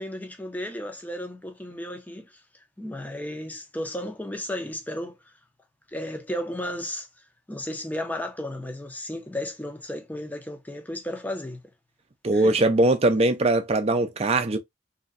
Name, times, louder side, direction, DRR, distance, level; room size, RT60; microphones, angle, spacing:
voice 1, 0.0-2.4 2.8-5.3 5.9-7.1 7.5-11.6 12.3-12.6, left 1 dB, 10° left, 0.6 m, -34 dB
voice 2, 12.2-14.6, right 2 dB, 35° right, 0.5 m, -21 dB
3.0 x 2.7 x 2.5 m
head